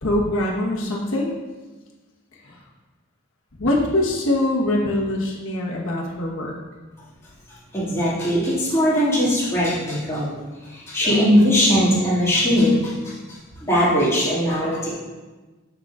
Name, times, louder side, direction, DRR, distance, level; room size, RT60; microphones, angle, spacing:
voice 1, 0.0-1.3 2.4-2.6 3.6-6.5, left 1 dB, 65° left, -2 dB, 1.2 m, -23 dB
voice 2, 7.7-10.3 10.7-13.1 13.6-14.9, equal, 10° left, -10 dB, 2.1 m, -20 dB
6.9 x 6.6 x 2.5 m, 1.2 s
head